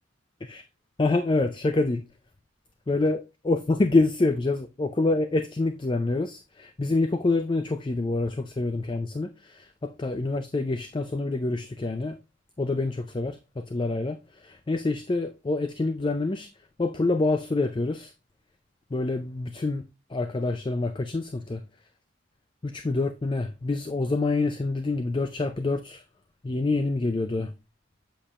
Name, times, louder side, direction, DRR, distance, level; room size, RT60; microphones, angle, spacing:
voice 1, 1.0-2.0 2.9-12.2 12.6-16.5 16.8-18.1 18.9-19.8 20.1-21.6 22.6-26.0 26.4-27.5, left 2 dB, 25° left, 0.4 m, -26 dB
7.7 x 6.7 x 2.4 m
head